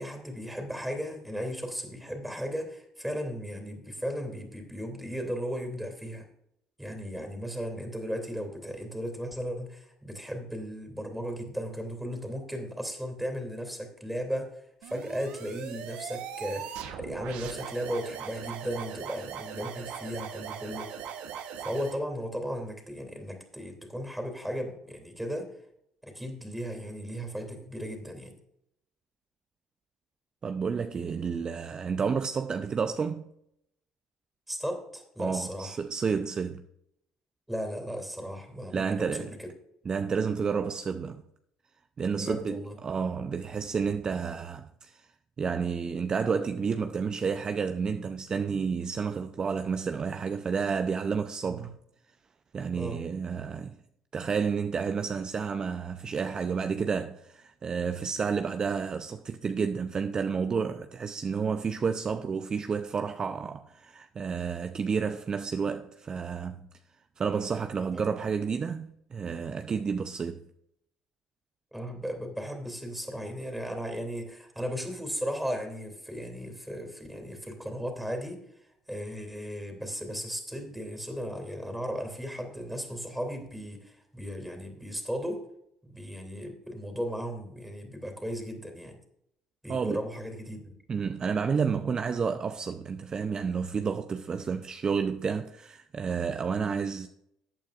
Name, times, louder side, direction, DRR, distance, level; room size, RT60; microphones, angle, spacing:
voice 1, 0.0-6.2 6.8-20.9 21.6-25.6 26.0-28.3 34.5-35.8 37.5-39.5 42.1-42.7 51.4-51.7 52.7-53.0 67.9-68.2 71.7-78.4 78.9-85.4 85.8-89.0 89.6-90.8, equal, 5° right, 2.8 m, -36 dB
sound 1, 14.8-22.0, right 8 dB, 75° right, 1.1 m, -40 dB
voice 2, 30.4-33.3 35.2-36.6 38.7-39.3 39.9-41.2 42.0-45.1 45.4-51.7 52.5-53.7 54.1-66.6 67.2-70.4 89.7-90.0 90.9-97.1, right 6 dB, 35° right, 0.5 m, -30 dB
15.0 x 8.7 x 2.5 m
supercardioid pair, 75°, 2 cm